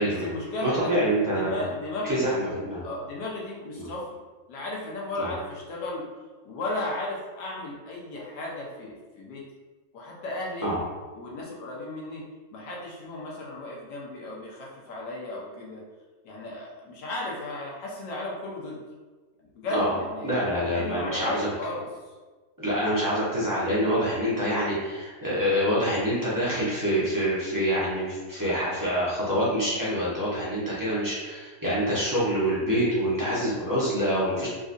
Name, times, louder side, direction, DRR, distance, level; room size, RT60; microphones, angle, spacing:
voice 1, 0.0-2.4 2.8-4.1 4.5-6.0 6.4-9.4 9.9-10.7 11.1-12.2 12.5-15.8 16.2-18.8 19.4-20.4 20.7-21.9, left 2 dB, 90° left, -3 dB, 1.4 m, -35 dB
voice 2, 0.6-1.6 2.0-2.8 3.7-3.9 5.2-5.3 10.6-10.8 19.7-20.0 20.2-21.5 22.6-34.5, equal, 25° right, -10 dB, 0.4 m, -26 dB
3.9 x 2.4 x 2.6 m, 1.3 s
omnidirectional pair, 1.8 m